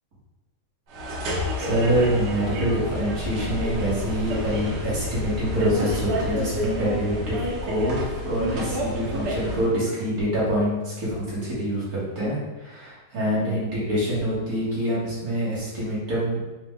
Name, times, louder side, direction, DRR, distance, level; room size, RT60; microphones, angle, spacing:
sound 1, 0.9-9.7, left 1 dB, 80° right, 1.3 m, -29 dB
voice 1, 1.3-7.4 7.6-16.4, equal, 65° right, -8 dB, 1.9 m, -26 dB
4.2 x 2.5 x 3.3 m, 1.1 s
omnidirectional pair, 1.7 m